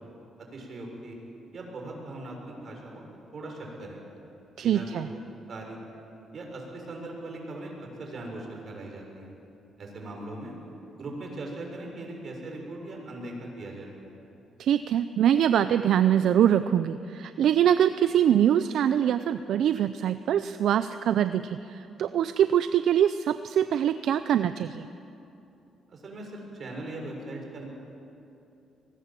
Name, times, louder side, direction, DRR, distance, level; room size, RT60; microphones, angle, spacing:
voice 1, 0.4-1.2 1.5-3.0 3.3-4.0 4.6-5.2 5.5-5.8 6.3-9.3 9.8-10.5 10.9-13.9 25.9-27.7, right 2 dB, 50° right, 0 dB, 6.7 m, -39 dB
voice 2, 4.6-5.1 14.6-24.9, right 10 dB, 75° right, 11 dB, 0.5 m, -24 dB
24.0 x 19.5 x 7.6 m, 2.8 s
cardioid pair, 90°, 0 cm